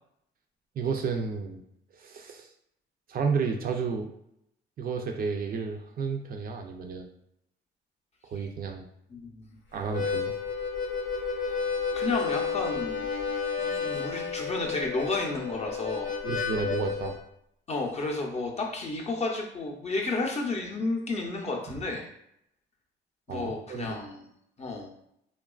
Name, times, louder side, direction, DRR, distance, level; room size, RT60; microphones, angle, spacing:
voice 1, 0.8-1.6 1.9-2.5 3.1-4.1 4.8-7.1 8.2-8.9 9.7-10.3 16.2-17.2 23.3-24.0, right 5 dB, 50° right, 3 dB, 0.4 m, -31 dB
Harmonica, 9.8-17.2, left 5 dB, 70° left, 0.7 m, -31 dB
voice 2, 11.9-13.1 13.6-16.1 17.7-22.1 23.3-24.3 24.6-24.9, left 3 dB, 35° left, 0 dB, 0.6 m, -32 dB
2.9 x 2.2 x 2.3 m, 0.76 s
cardioid pair, 90°, 20 cm